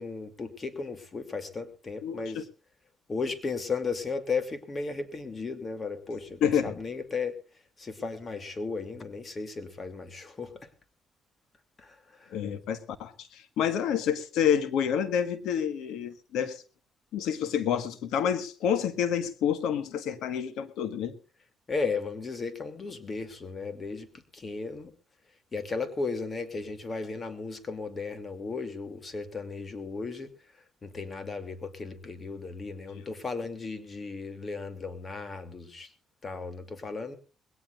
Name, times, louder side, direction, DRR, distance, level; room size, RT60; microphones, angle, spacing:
voice 1, 0.0-2.4 3.1-7.3 7.8-10.7 11.8-12.4 21.7-24.9 25.5-30.3 30.8-35.9 36.2-37.2, left 4 dB, 35° left, 10 dB, 2.7 m, -35 dB
voice 2, 2.0-2.4 6.4-6.8 12.3-16.6 17.1-21.2, left 8 dB, 85° left, 12 dB, 1.5 m, -28 dB
21.0 x 17.5 x 2.5 m, 0.35 s
cardioid pair, 90°, 0 cm